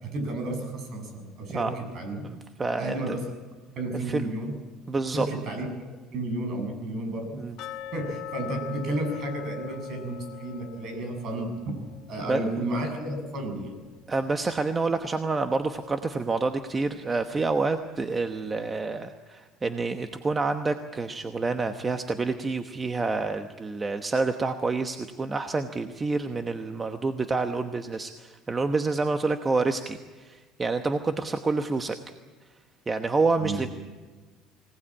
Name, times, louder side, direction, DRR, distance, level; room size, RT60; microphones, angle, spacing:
voice 1, 0.0-2.3 2.8-3.2 3.8-4.5 5.1-5.7 6.1-7.4 7.9-11.8 12.1-13.7 33.4-33.6, right 1 dB, 50° right, 5 dB, 7.4 m, -32 dB
voice 2, 2.2-3.2 4.1-4.3 4.9-5.3 7.4-7.5 12.3-12.4 14.1-32.0 32.9-33.7, right 3 dB, 20° right, 7 dB, 1.1 m, -28 dB
sound 1, 7.6-14.4 14.7-14.8 15.3-15.4 16.0-16.1, left 10 dB, 65° left, 1.3 m, -42 dB
25.0 x 18.5 x 8.8 m, 1.4 s
cardioid pair, 130°, 0 cm